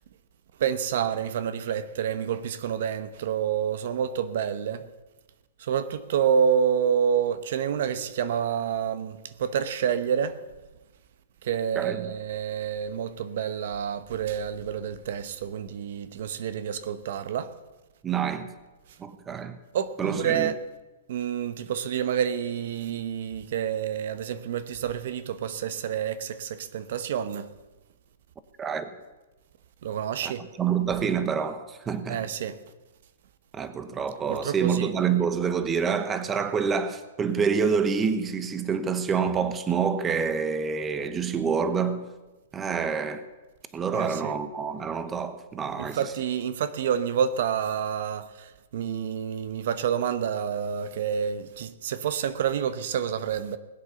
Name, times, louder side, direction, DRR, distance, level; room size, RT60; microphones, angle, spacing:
voice 1, 0.6-4.8 5.6-10.4 11.4-17.5 19.7-20.6 21.1-27.5 29.8-30.4 32.1-32.6 34.3-34.9 43.9-44.3 45.8-53.6, right 8 dB, 65° right, 0.9 m, -28 dB
voice 2, 11.8-12.1 18.0-18.5 19.0-19.6 20.0-20.5 28.6-28.9 30.2-30.3 30.6-32.2 33.5-42.1 42.5-43.2 43.7-46.0, right 6 dB, 15° right, 0.9 m, -27 dB
20.0 x 8.2 x 6.9 m
hypercardioid pair, 140°, 0 cm